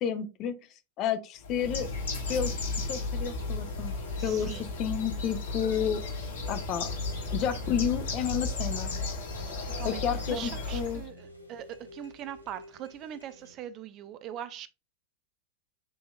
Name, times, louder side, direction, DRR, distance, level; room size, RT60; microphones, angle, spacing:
voice 1, 0.0-0.6 1.0-1.9 2.3-2.5 2.9-3.9 4.2-4.5 4.8-6.0 6.5-6.9 7.3-8.9 9.8-11.0, left 8 dB, 35° left, 0.6 m, -30 dB
Bird, 1.4-11.1, left 3 dB, 65° left, 1.4 m, -34 dB
sound 1, 1.6-13.6, equal, 90° right, 0.8 m, -49 dB
voice 2, 4.2-4.7 9.7-14.7, right 10 dB, 35° right, 0.4 m, -41 dB
6.8 x 2.9 x 2.2 m
figure-of-eight pair, 90°, 0 cm